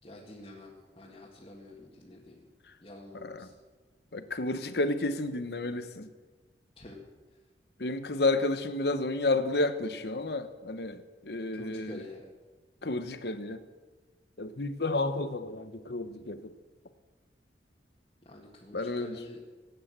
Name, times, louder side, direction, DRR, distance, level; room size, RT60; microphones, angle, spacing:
voice 1, 0.0-2.5 2.8-3.5 6.8-7.0 11.5-12.3 18.2-19.4, left 1 dB, 30° left, -5 dB, 2.0 m, -48 dB
voice 2, 4.1-6.1 7.8-12.0 12.8-13.6 14.4-16.5 18.7-19.1, left 2 dB, 65° left, 11 dB, 1.1 m, -31 dB
17.5 x 9.4 x 7.6 m, 1.3 s
head